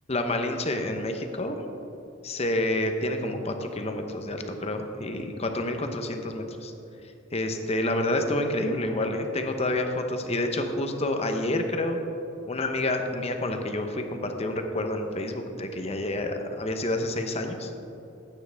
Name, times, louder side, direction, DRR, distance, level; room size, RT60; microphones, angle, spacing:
voice 1, 0.1-1.6 2.2-6.7 7.3-12.0 12.4-17.7, left 1 dB, 30° left, 5 dB, 0.8 m, -28 dB
14.0 x 9.0 x 3.4 m, 2.9 s
head